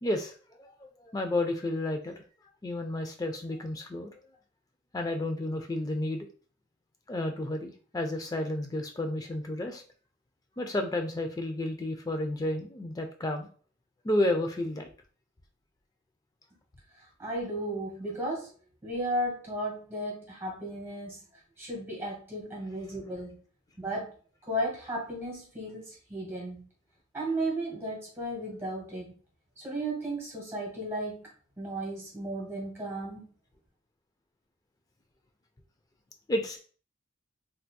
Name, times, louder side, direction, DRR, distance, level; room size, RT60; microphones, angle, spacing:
voice 1, 0.0-2.2 2.6-4.1 4.9-6.3 7.1-9.8 10.6-13.5 14.0-14.9 36.3-36.6, left 1 dB, 15° left, 5 dB, 0.4 m, -31 dB
voice 2, 17.0-18.5 18.8-21.2 21.6-23.4 23.8-24.1 24.5-26.7 27.1-29.1 29.6-31.3 31.6-33.3, right 1 dB, 10° right, -3 dB, 1.3 m, -34 dB
3.4 x 2.8 x 2.2 m, 0.41 s
head